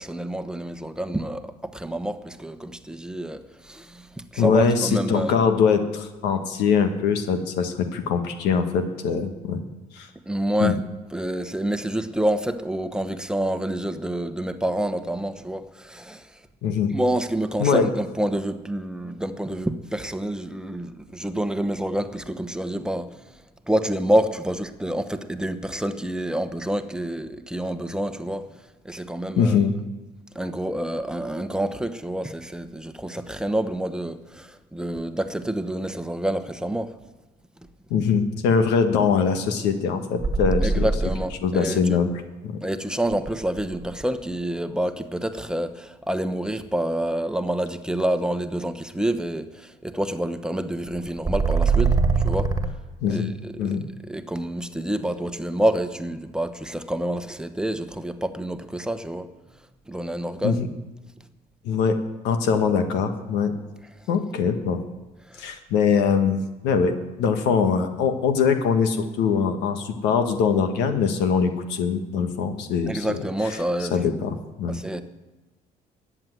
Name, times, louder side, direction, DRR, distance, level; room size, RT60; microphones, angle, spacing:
voice 1, 0.0-5.3 10.3-10.8 11.1-16.4 16.9-28.6 28.8-29.6 30.3-36.9 40.6-42.0 42.6-52.0 52.2-52.5 53.1-53.8 54.1-59.3 59.9-60.6 65.3-65.6 72.9-74.0 74.7-75.0, right 1 dB, 5° right, 1.0 m, -28 dB
voice 2, 4.4-9.6 9.9-10.1 10.6-10.7 16.6-16.9 17.6-17.9 29.4-29.7 37.9-40.9 41.4-42.1 42.4-42.6 53.0-53.3 53.6-53.8 60.4-60.7 61.6-63.5 64.1-64.8 65.4-66.9 67.2-73.2 73.8-74.8, left 6 dB, 90° left, 1.4 m, -22 dB
sound 1, 40.2-41.4 43.1-44.0 51.0-52.7, right 4 dB, 20° right, 1.7 m, -22 dB
14.0 x 8.8 x 9.3 m
cardioid pair, 110°, 17 cm